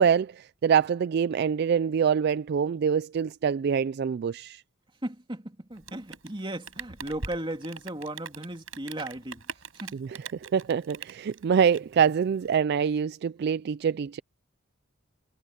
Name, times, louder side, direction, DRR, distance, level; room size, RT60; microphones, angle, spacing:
voice 1, 0.0-4.6 9.9-14.2, right 7 dB, 55° right, 0.3 m, -25 dB
voice 2, 5.0-9.5 9.7-10.0, right 1 dB, 25° right, 2.8 m, -36 dB
Rain, 5.7-12.5, right 5 dB, 85° right, 6.3 m, -42 dB
head